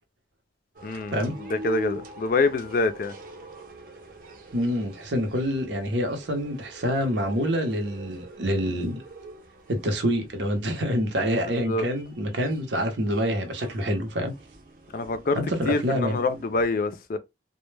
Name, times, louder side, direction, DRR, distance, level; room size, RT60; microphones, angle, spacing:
sound 1, 0.7-16.7, right 1 dB, 50° right, 0.6 m, -45 dB
voice 1, 0.8-3.1 11.7-11.8 14.9-17.2, left 3 dB, 50° left, 0.4 m, -26 dB
voice 2, 4.5-9.0 9.7-14.3 15.3-16.2, equal, 85° right, 0.8 m, -26 dB
2.1 x 2.1 x 3.2 m
head